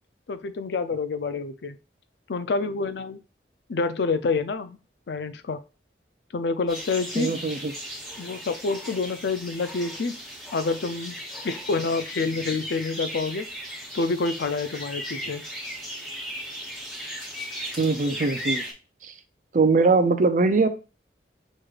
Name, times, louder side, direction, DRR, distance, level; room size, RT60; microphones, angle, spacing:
voice 1, 0.3-1.8 2.3-3.2 3.7-4.8 5.1-5.6 6.3-7.4 8.2-10.1 10.5-11.1 11.4-13.5 13.9-15.4, left 4 dB, 75° left, 11 dB, 0.5 m, -27 dB
sound 1, 6.7-18.7, equal, ahead, 1.1 m, -36 dB
voice 2, 7.2-7.7 17.8-18.6 19.0-19.1 19.5-20.7, right 3 dB, 45° right, 9 dB, 0.5 m, -21 dB
6.2 x 3.1 x 2.4 m, 0.32 s
head